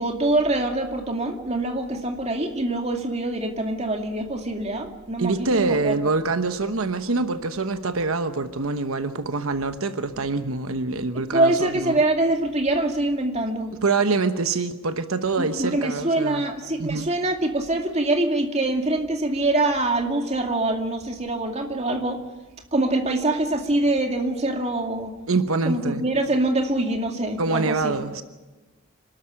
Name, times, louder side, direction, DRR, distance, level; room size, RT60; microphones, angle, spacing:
voice 1, 0.0-6.1 11.1-13.7 15.4-22.2 22.7-25.1 25.6-28.0, right 2 dB, 30° right, 4 dB, 2.4 m, -24 dB
voice 2, 5.2-12.0 13.8-16.4 16.8-17.1 25.3-26.0 27.4-28.2, right 3 dB, 85° right, 9 dB, 1.1 m, -25 dB
26.0 x 13.0 x 9.0 m, 1.2 s
head